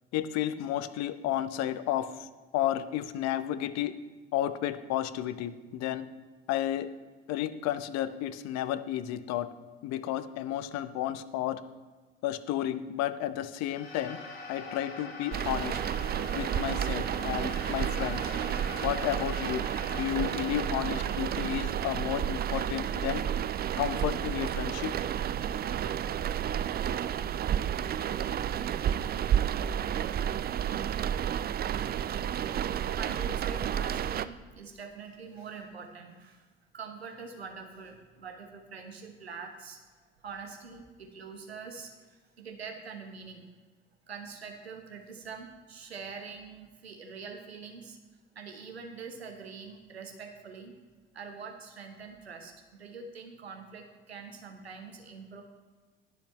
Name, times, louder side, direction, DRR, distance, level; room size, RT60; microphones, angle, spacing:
voice 1, 0.1-3.9 4.3-6.1 6.5-6.9 7.3-9.5 9.8-11.6 12.2-14.2 14.5-15.8 16.3-18.3 18.8-19.7 19.9-23.2 23.8-24.9, left 12 dB, 60° left, 13 dB, 0.8 m, -32 dB
sound 1, 13.6-24.2, left 3 dB, 90° left, 1.1 m, -44 dB
sound 2, 15.3-34.3, right 9 dB, 30° right, 0.5 m, -31 dB
voice 2, 32.9-36.5 36.7-43.5 44.1-48.0 48.3-50.7 51.1-55.4, right 5 dB, 90° right, 4 dB, 1.1 m, -44 dB
20.5 x 7.2 x 3.2 m, 1.4 s
figure-of-eight pair, 55°, 30 cm